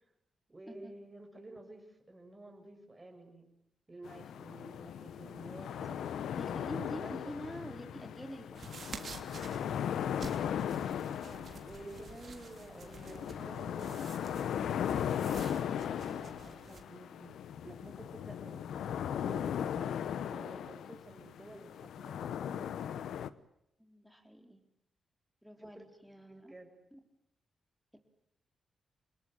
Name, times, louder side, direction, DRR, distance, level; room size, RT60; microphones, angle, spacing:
voice 1, 0.5-3.5 3.9-7.3 11.2-17.4 17.6-20.0 20.3-22.7 25.6-25.8 26.3-26.8, right 2 dB, 20° right, 4 dB, 6.8 m, -51 dB
sound 1, 4.0-23.3, left 9 dB, 90° left, 0.9 m, -38 dB
voice 2, 6.4-9.1 9.6-9.8 23.8-24.6 25.4-26.5 26.9-27.0 27.9-28.0, equal, ahead, 6 dB, 4.2 m, -47 dB
sound 2, 8.5-16.8, right 5 dB, 60° right, 3.3 m, -50 dB
27.0 x 20.5 x 9.0 m, 0.78 s
cardioid pair, 85°, 0 cm